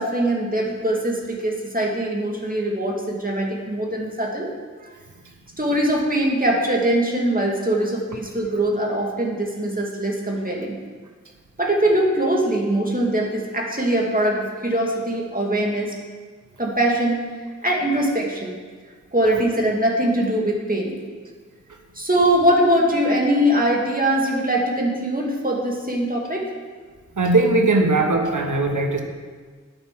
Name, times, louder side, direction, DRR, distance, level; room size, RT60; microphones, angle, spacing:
voice 1, 0.0-4.5 5.6-10.8 11.6-16.0 16.6-17.3 17.6-18.6 19.1-21.0 22.0-26.5, right 1 dB, 30° right, -1 dB, 2.1 m, -22 dB
voice 2, 27.1-29.0, right 2 dB, 75° right, 3 dB, 1.2 m, -19 dB
9.2 x 6.0 x 7.3 m, 1.5 s
wide cardioid pair, 40°, 30 cm